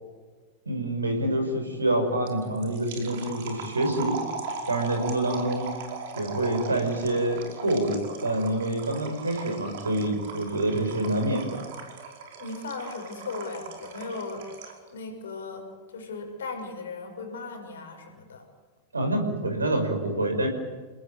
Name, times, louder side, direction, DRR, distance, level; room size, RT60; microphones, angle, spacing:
voice 1, 0.7-4.2 4.7-5.7 6.2-11.6 18.9-20.5, right 1 dB, 80° right, 6 dB, 5.9 m, -27 dB
sound 1, 2.3-14.9, right 4 dB, 55° right, 5.3 m, -39 dB
voice 2, 12.4-18.4, left 3 dB, 65° left, 4 dB, 5.9 m, -37 dB
29.5 x 19.0 x 9.7 m, 1.4 s
figure-of-eight pair, 90°, 0 cm